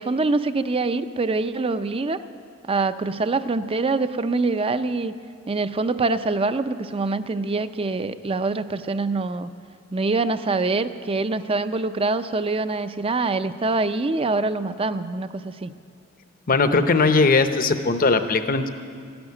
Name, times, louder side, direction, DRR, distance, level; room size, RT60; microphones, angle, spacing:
voice 1, 0.0-2.2 2.7-5.1 5.5-9.5 9.9-15.7, right 3 dB, 30° right, 12 dB, 0.5 m, -24 dB
voice 2, 16.5-18.7, left 3 dB, 45° left, 9 dB, 0.8 m, -19 dB
13.0 x 11.5 x 9.7 m, 2.2 s
head